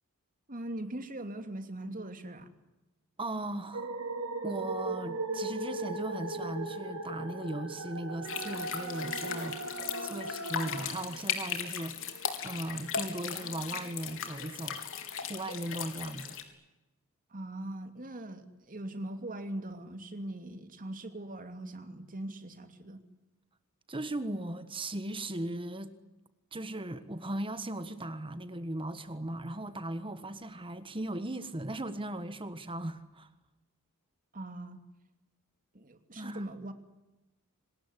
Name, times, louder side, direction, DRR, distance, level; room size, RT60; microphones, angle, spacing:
voice 1, 0.5-2.5 17.3-23.0 34.3-34.8 35.7-36.7, right 1 dB, 40° right, 2.7 m, -41 dB
voice 2, 3.2-4.0 4.4-12.0 12.4-14.8 15.2-16.3 23.9-26.0 26.5-33.3 36.2-36.6, right 1 dB, 25° right, 1.4 m, -38 dB
sound 1, 3.7-10.8, right 2 dB, 75° right, 3.6 m, -37 dB
sound 2, 8.2-16.4, left 7 dB, 65° left, 4.0 m, -37 dB
26.5 x 20.0 x 9.9 m
head